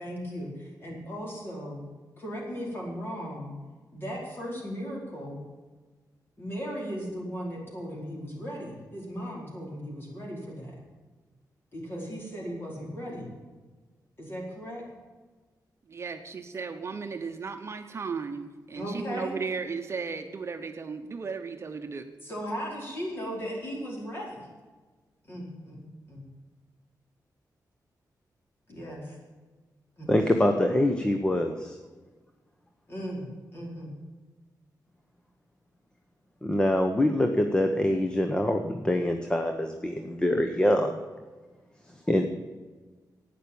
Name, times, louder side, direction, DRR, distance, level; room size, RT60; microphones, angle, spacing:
voice 1, 0.0-1.8 2.2-3.6 3.9-5.4 6.4-10.8 11.7-13.3 14.2-14.9 18.7-19.4 22.2-24.5 25.2-25.8 26.1-26.2 28.7-29.0 30.0-30.1 32.9-33.2 33.5-33.9, equal, 30° left, -2 dB, 4.7 m, -37 dB
voice 2, 15.9-22.0, right 5 dB, 40° right, 5 dB, 1.0 m, -35 dB
voice 3, 30.1-31.8 36.4-41.0 42.1-42.3, left 1 dB, 10° left, 5 dB, 1.0 m, -25 dB
11.5 x 9.4 x 8.7 m, 1.3 s
wide cardioid pair, 150°, 7 cm